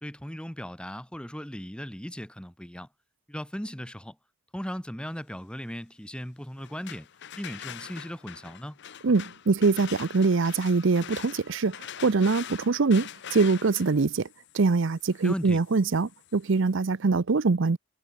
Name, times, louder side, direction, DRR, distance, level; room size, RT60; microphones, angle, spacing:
voice 1, 0.0-2.9 3.3-4.2 4.5-7.1 7.4-8.8 15.2-15.6, equal, 5° left, 1.8 m, -37 dB
sound 1, 6.6-16.4, left 9 dB, 55° left, 0.8 m, -44 dB
voice 2, 9.0-14.3 14.5-17.8, right 4 dB, 60° right, 0.6 m, -23 dB
head